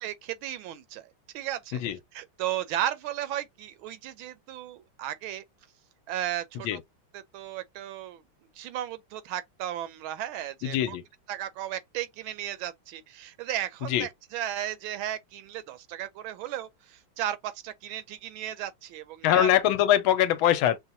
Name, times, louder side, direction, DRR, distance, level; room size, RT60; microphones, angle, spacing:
voice 1, 0.0-1.8 2.1-5.4 6.1-6.8 7.1-8.2 8.6-11.0 11.3-19.5, right 12 dB, 80° right, 1.4 m, -35 dB
voice 2, 10.6-11.0 13.9-14.1 19.2-20.8, left 11 dB, 80° left, 1.4 m, -22 dB
5.6 x 2.2 x 2.6 m
omnidirectional pair, 2.3 m